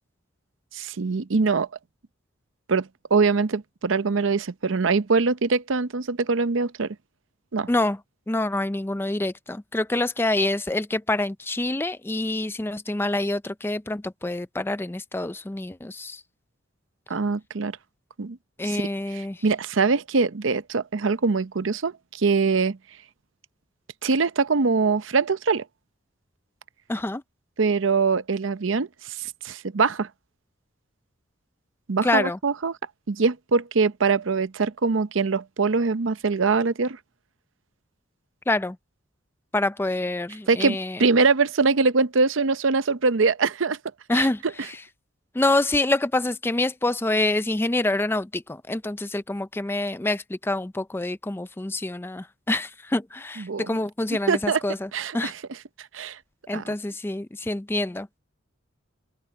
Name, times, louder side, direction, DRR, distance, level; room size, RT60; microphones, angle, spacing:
voice 1, 0.7-1.7 2.7-7.0 7.5-7.7 17.1-17.8 18.2-18.4 18.6-18.8 19.1-22.8 24.0-25.6 27.6-30.1 31.9-32.7 33.1-37.0 40.5-43.8 44.1-44.3 53.4-53.7 54.3-54.6 54.9-55.3 55.8-56.2 56.5-56.7, right 4 dB, 70° right, 0.7 m, -23 dB
voice 2, 7.7-8.0 8.3-16.2 18.6-19.4 26.9-27.2 32.0-32.4 38.5-38.8 39.5-41.0 44.1-44.8 45.3-55.3 56.5-58.1, left 2 dB, 10° left, 0.4 m, -26 dB
head